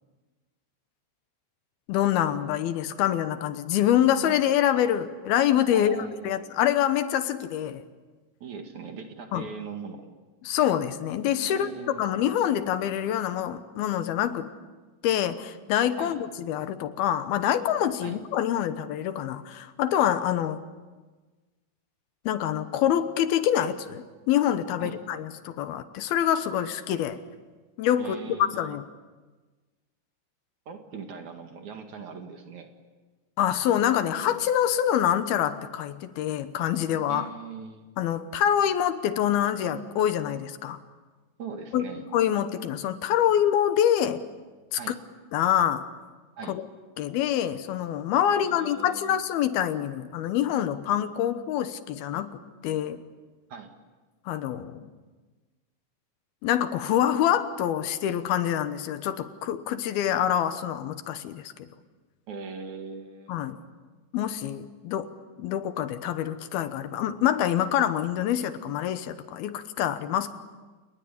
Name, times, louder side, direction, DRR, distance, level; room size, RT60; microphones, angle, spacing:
voice 1, 1.9-6.0 6.2-7.8 9.3-9.5 10.4-14.5 15.0-20.6 22.3-27.2 27.8-28.8 33.4-37.3 38.0-40.8 41.7-44.3 44.7-45.0 45.3-45.8 46.5-46.7 47.0-53.0 54.3-54.8 56.4-61.7 63.3-63.6 64.1-65.1 65.4-70.4, left 10 dB, 75° left, 11 dB, 2.9 m, -26 dB
voice 2, 5.7-6.4 8.4-10.1 11.5-12.0 16.0-16.1 18.0-18.2 24.8-25.0 28.0-28.7 30.7-32.7 37.1-37.9 41.4-42.0 44.8-45.0 46.4-46.6 48.3-49.2 53.5-53.7 62.3-63.3, right 5 dB, 55° right, 5 dB, 3.1 m, -40 dB
30.0 x 20.0 x 8.5 m, 1.3 s
omnidirectional pair, 4.6 m